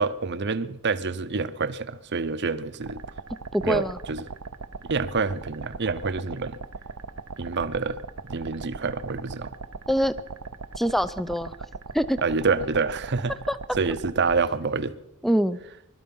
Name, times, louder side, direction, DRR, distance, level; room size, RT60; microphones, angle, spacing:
voice 1, 0.0-3.0 3.6-4.3 4.8-6.6 7.4-8.0 8.3-9.5 12.2-13.3 13.8-15.0, right 4 dB, 50° right, 0.8 m, -27 dB
sound 1, 2.8-14.4, right 4 dB, 85° right, 0.8 m, -39 dB
voice 2, 3.5-4.0 9.9-10.1 10.8-11.5 11.9-12.2 13.5-13.6 15.2-15.6, equal, ahead, 0.5 m, -24 dB
21.0 x 12.5 x 5.5 m
head